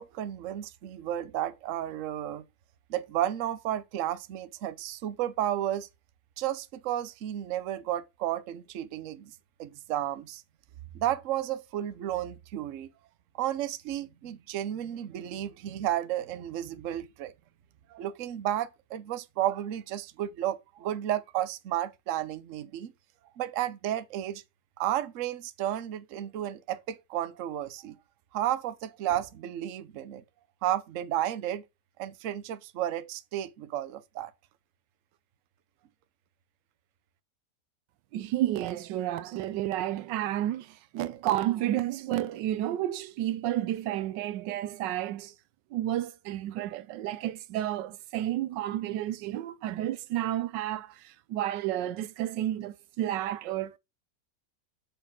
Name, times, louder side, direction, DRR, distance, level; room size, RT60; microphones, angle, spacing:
voice 1, 0.0-2.4 2.9-5.9 6.4-10.4 10.9-12.9 13.3-17.3 17.9-22.9 23.4-24.4 24.8-28.0 28.3-30.2 30.6-31.6 32.0-34.3, right 12 dB, 55° right, 1.0 m, -32 dB
voice 2, 38.1-45.3 45.7-53.8, right 13 dB, 85° right, 1.3 m, -31 dB
6.1 x 5.3 x 5.8 m
omnidirectional pair, 1.9 m